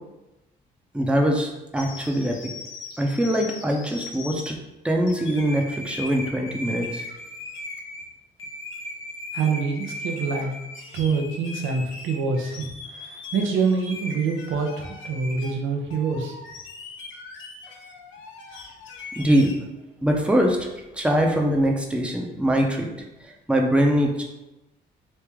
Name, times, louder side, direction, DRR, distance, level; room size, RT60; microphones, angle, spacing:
voice 1, 0.9-2.4 3.0-4.6 4.8-7.0 19.2-19.5 20.0-20.7 20.9-22.9 23.5-24.2, equal, 5° right, 1 dB, 0.6 m, -22 dB
sound 1, 1.8-4.5 5.1-8.1 8.4-15.6 15.9-19.6, left 2 dB, 80° left, 0.7 m, -38 dB
voice 2, 9.3-10.5 10.9-12.6 12.9-16.4, right 5 dB, 80° right, 2 dB, 0.7 m, -25 dB
3.2 x 2.8 x 3.5 m, 0.99 s
cardioid pair, 90°, 20 cm